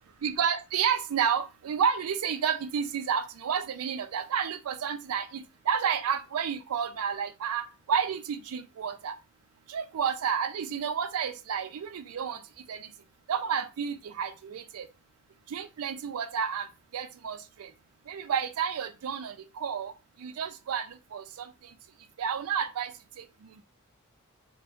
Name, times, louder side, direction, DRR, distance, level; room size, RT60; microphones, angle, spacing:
voice 1, 0.2-9.1 9.7-12.4 12.7-12.9 13.3-14.9 15.5-16.7 16.9-17.7 18.1-19.9 20.2-20.9 21.1-21.5 22.2-22.9, right 7 dB, 80° right, 0.4 m, -30 dB
2.6 x 2.1 x 3.5 m
head